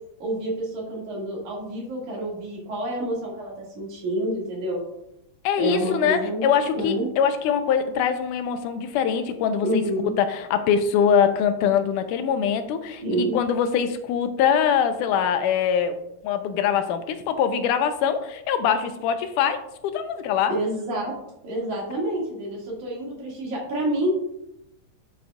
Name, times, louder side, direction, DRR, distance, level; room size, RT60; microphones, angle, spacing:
voice 1, 0.2-4.8 5.6-6.5 6.8-7.1 9.6-10.1 13.0-13.4 20.5-21.1 21.4-24.1, right 1 dB, 70° right, -3 dB, 3.4 m, -28 dB
voice 2, 5.4-9.8 10.2-13.0 13.3-20.5, left 7 dB, 90° left, 9 dB, 2.2 m, -23 dB
10.0 x 6.5 x 2.3 m, 0.82 s
omnidirectional pair, 3.6 m